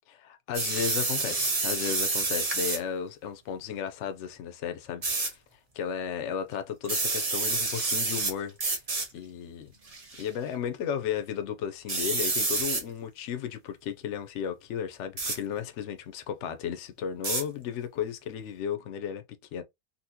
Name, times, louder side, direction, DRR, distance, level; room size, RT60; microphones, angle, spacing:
voice 1, 0.1-5.4 5.7-8.6 9.1-9.7 10.2-19.6, left 8 dB, 80° left, 0.6 m, -34 dB
sound 1, 0.5-2.8 5.0-5.3 6.8-8.3 8.6-9.1 9.9-10.2 11.9-12.8 15.2-15.4 17.2-17.4, right 3 dB, 75° right, 0.3 m, -28 dB
4.1 x 2.1 x 2.7 m
omnidirectional pair, 1.9 m